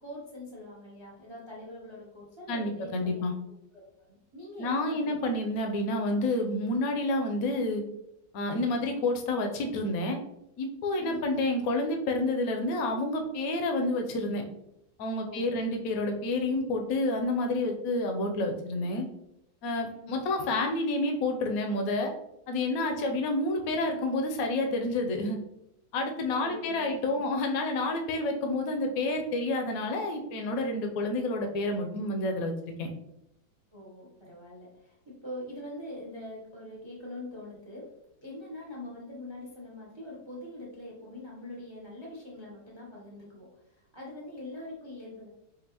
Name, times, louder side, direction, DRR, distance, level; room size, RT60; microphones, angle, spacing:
voice 1, 0.0-3.4 3.7-5.2 11.0-11.2 15.2-15.7 19.8-20.1 22.9-23.2 26.3-27.3 33.7-37.9 38.2-43.5 43.8-45.3, left 1 dB, 40° right, -4 dB, 0.4 m, -43 dB
voice 2, 2.5-3.3 4.6-7.8 8.3-10.2 10.6-14.4 15.0-19.1 19.6-22.1 22.5-25.4 25.9-32.5 32.8-32.9, left 2 dB, 65° left, 4 dB, 0.9 m, -29 dB
5.3 x 2.4 x 2.9 m, 0.80 s
omnidirectional pair, 2.0 m